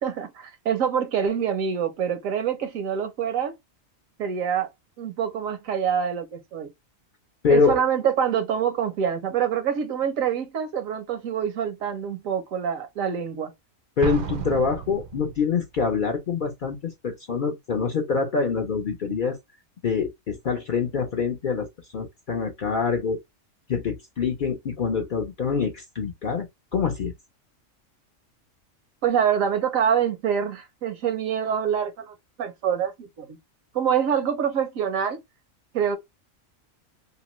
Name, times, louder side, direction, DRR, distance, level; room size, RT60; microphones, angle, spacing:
voice 1, 0.0-3.5 4.2-4.7 5.0-6.7 7.5-13.5 29.0-33.4 33.7-35.2 35.7-36.0, right 8 dB, 80° right, 1.1 m, -25 dB
voice 2, 7.4-7.8 14.0-19.4 19.8-23.2 23.7-26.5 26.7-27.1, left 5 dB, 55° left, 0.5 m, -25 dB
Explosion, 14.0-15.6, right 7 dB, 60° right, 0.5 m, -33 dB
2.9 x 2.1 x 2.9 m
omnidirectional pair, 1.4 m